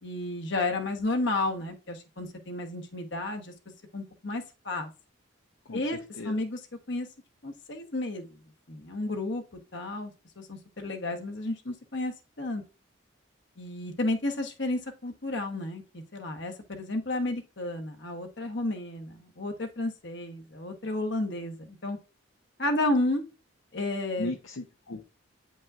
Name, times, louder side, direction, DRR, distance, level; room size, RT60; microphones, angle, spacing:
voice 1, 0.0-3.5 3.9-4.9 5.7-6.0 6.2-6.6 6.9-7.1 7.4-8.2 8.7-9.4 9.7-12.6 13.6-15.8 16.1-22.0 22.6-23.2 23.7-24.3, left 2 dB, 60° left, 4 dB, 1.1 m, -32 dB
voice 2, 5.7-6.4 24.2-25.0, left 2 dB, 75° left, 4 dB, 0.6 m, -37 dB
8.8 x 5.3 x 2.4 m, 0.32 s
head